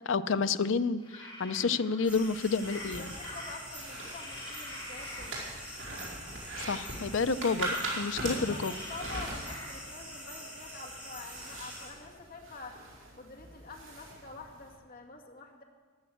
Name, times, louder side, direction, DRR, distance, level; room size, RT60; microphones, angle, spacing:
voice 1, 0.1-3.1 6.6-8.7, left 4 dB, 65° left, 12 dB, 0.6 m, -30 dB
sound 1, 1.0-5.5 6.5-7.0 8.3-9.7, left 1 dB, 25° left, 5.1 m, -46 dB
sound 2, 2.0-11.9, equal, 5° right, 4.5 m, -45 dB
sound 3, 2.6-14.7, right 2 dB, 65° right, 4.9 m, -41 dB
voice 2, 2.9-5.4 8.2-12.8 13.1-15.6, left 3 dB, 45° left, 1 dB, 2.2 m, -47 dB
14.0 x 11.0 x 7.8 m, 1.5 s
head